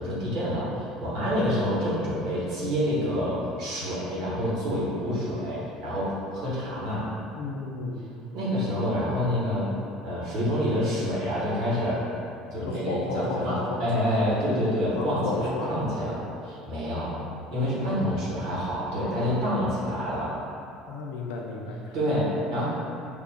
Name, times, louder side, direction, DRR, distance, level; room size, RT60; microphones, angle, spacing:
voice 1, 0.0-7.1 8.3-9.7 10.0-12.0 12.5-17.2 17.5-20.4 21.9-22.6, equal, 60° right, -9 dB, 1.3 m, -27 dB
voice 2, 7.4-8.0 12.6-14.2 15.0-15.8 17.8-18.1 20.9-22.0, left 3 dB, 65° left, 0 dB, 0.4 m, -33 dB
3.5 x 2.3 x 3.5 m, 2.5 s
figure-of-eight pair, 60°, 0 cm